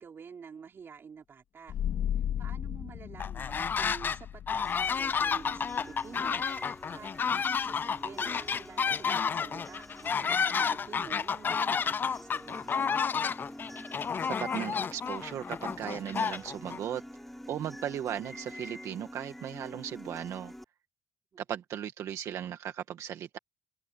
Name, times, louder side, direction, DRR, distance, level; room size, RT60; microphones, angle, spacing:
voice 1, 0.0-1.7 2.4-6.5 6.9-13.0, right 6 dB, 45° right, 5.0 m, -48 dB
sound 1, 1.7-12.9, left 10 dB, 80° left, 3.9 m, -39 dB
sound 2, 3.2-4.2 4.5-16.8, left 6 dB, 40° left, 0.4 m, -31 dB
sound 3, 4.6-20.6, equal, 5° left, 5.0 m, -47 dB
voice 2, 14.2-17.0 17.5-20.5 21.5-23.4, right 10 dB, 80° right, 1.7 m, -37 dB
cardioid pair, 110°, 5 cm